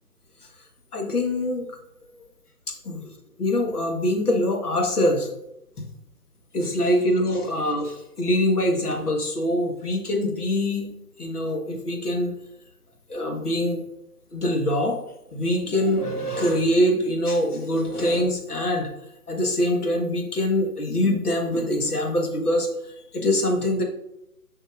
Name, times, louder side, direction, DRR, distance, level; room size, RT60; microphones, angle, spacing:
voice 1, 0.9-1.7 2.7-3.1 3.4-5.3 5.8-5.9 6.5-10.9 11.2-12.3 13.1-13.8 14.3-15.0 15.3-18.9 19.3-23.8, left 1 dB, 70° left, 2 dB, 1.6 m, -24 dB
7.2 x 5.3 x 2.5 m, 0.80 s
figure-of-eight pair, 145°, 47 cm